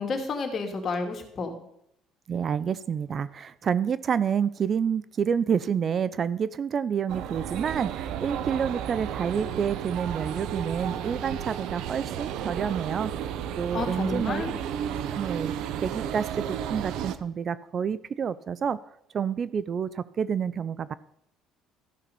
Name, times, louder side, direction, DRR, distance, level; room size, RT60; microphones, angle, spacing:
voice 1, 0.0-1.6 13.7-14.6, left 4 dB, 40° left, 4 dB, 2.5 m, -30 dB
voice 2, 2.3-13.1 13.6-14.5 15.1-15.5 15.8-18.8 19.1-20.9, right 7 dB, 40° right, 17 dB, 0.5 m, -28 dB
sound 1, 7.1-17.2, right 9 dB, 75° right, 0.9 m, -33 dB
13.5 x 5.9 x 6.8 m, 0.76 s
cardioid pair, 110°, 0 cm